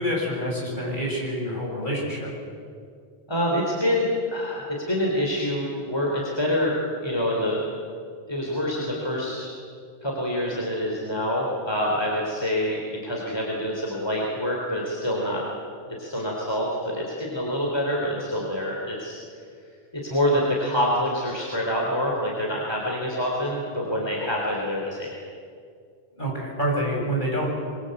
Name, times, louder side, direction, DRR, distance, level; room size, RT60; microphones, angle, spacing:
voice 1, 0.0-2.3 26.1-27.5, equal, 50° left, -3 dB, 7.8 m, -27 dB
voice 2, 3.3-6.7 7.0-7.6 8.3-9.5 10.0-15.4 16.0-19.2 20.0-25.1, equal, 25° left, -3 dB, 4.0 m, -26 dB
26.5 x 22.5 x 8.1 m, 2.2 s
omnidirectional pair, 1.1 m